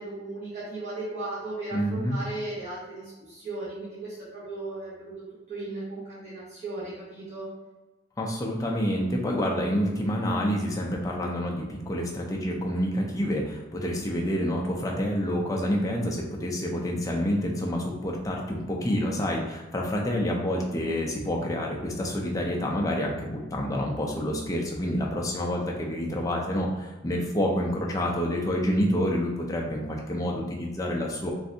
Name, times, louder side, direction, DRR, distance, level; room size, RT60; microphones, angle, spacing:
voice 1, 0.0-7.5, right 2 dB, 35° right, -12 dB, 1.0 m, -36 dB
voice 2, 1.7-2.2 8.2-31.3, equal, 15° left, -1 dB, 0.4 m, -28 dB
3.2 x 2.6 x 2.6 m, 1.1 s
head